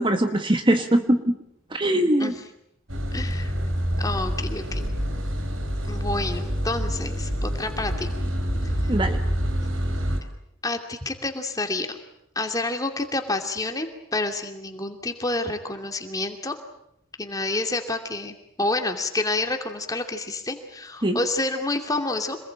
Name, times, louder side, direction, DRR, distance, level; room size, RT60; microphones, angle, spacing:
voice 1, 0.0-1.4 1.7-2.3 8.9-9.2 21.0-21.2, right 1 dB, 25° right, 7 dB, 1.3 m, -21 dB
sound 1, 2.9-10.2, equal, 70° right, 4.1 m, -27 dB
voice 2, 3.1-3.5 4.0-4.9 5.8-8.1 8.8-8.9 10.6-12.0 12.4-16.6 17.2-22.4, left 2 dB, 15° left, 5 dB, 2.6 m, -29 dB
27.0 x 20.5 x 8.9 m, 0.78 s
head